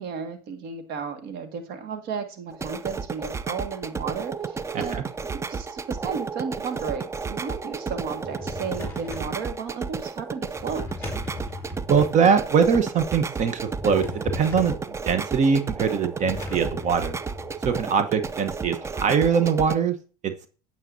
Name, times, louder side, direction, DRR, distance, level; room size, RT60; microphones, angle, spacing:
voice 1, 0.0-5.0 5.5-10.8, right 5 dB, 60° right, 7 dB, 1.8 m, -33 dB
sound 1, 2.5-19.8, right 5 dB, 15° right, 0.4 m, -33 dB
Drawer open or close, 8.1-9.4 10.5-12.2 13.5-14.9 16.2-17.8, left 3 dB, 15° left, 3.2 m, -37 dB
voice 2, 11.9-17.1 17.6-19.9 20.2-20.5, right 6 dB, 40° right, 10 dB, 1.0 m, -22 dB
9.1 x 7.3 x 2.7 m, 0.37 s
supercardioid pair, 90°, 18 cm